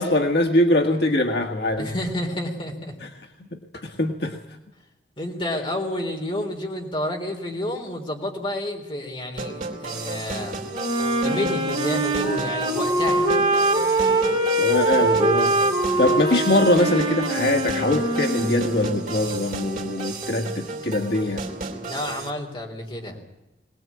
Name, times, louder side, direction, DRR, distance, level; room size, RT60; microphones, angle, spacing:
voice 1, 0.0-1.9 3.5-4.4 14.6-15.6 16.0-21.5, left 1 dB, 65° left, 3 dB, 1.7 m, -22 dB
voice 2, 1.8-3.0 5.2-10.6 11.2-13.3 21.8-23.2, left 1 dB, 30° left, 1 dB, 3.8 m, -30 dB
sound 1, 9.4-22.3, right 3 dB, 45° right, 3.6 m, -33 dB
Wind instrument woodwind instrument, 10.7-19.1, right 2 dB, 30° right, 4.7 m, -23 dB
22.0 x 19.5 x 8.6 m, 0.97 s
head